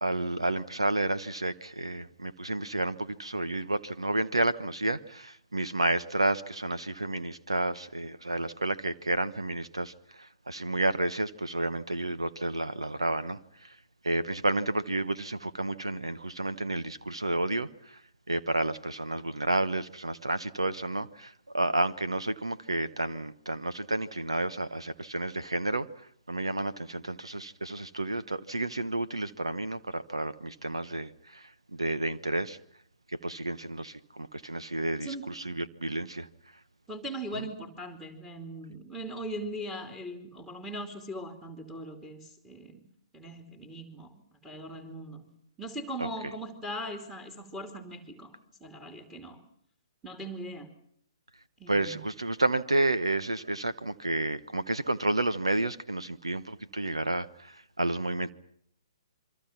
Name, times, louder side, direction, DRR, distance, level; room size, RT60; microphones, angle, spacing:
voice 1, 0.0-13.7 14.0-18.0 18.3-25.9 26.3-32.6 33.2-36.3 46.0-46.1 51.7-58.3, right 2 dB, 80° right, 1.1 m, -31 dB
voice 2, 35.0-35.4 36.9-42.8 43.1-44.1 44.4-45.3 45.6-48.3 48.6-49.4 50.0-50.7 51.6-52.0, right 1 dB, 10° right, 2.7 m, -40 dB
28.0 x 24.0 x 5.9 m
figure-of-eight pair, 125°, 3 cm